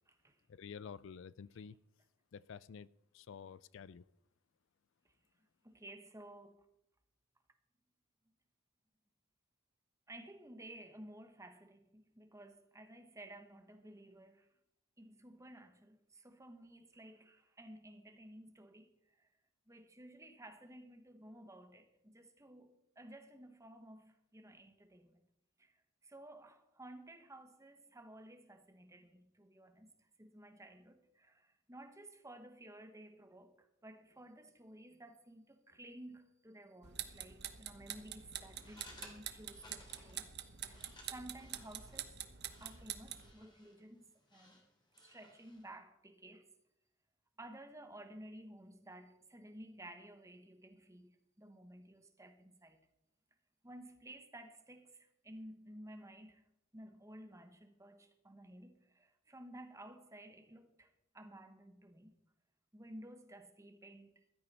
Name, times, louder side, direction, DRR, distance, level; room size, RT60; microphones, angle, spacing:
voice 1, 0.5-1.8 2.3-4.0, left 6 dB, 60° left, 0.4 m, -50 dB
voice 2, 5.6-6.7 10.1-14.5 15.0-19.3 19.7-25.2 25.6-25.8 26.0-29.9 30.2-42.2 42.6-44.7 45.0-46.5 47.4-52.9 53.6-56.4 56.7-62.1 62.7-64.1, right 1 dB, 15° right, 1.3 m, -55 dB
sound 1, 36.8-43.3, right 10 dB, 50° right, 1.1 m, -46 dB
sound 2, 38.4-45.7, left 2 dB, 20° left, 3.3 m, -61 dB
15.0 x 13.0 x 4.3 m
head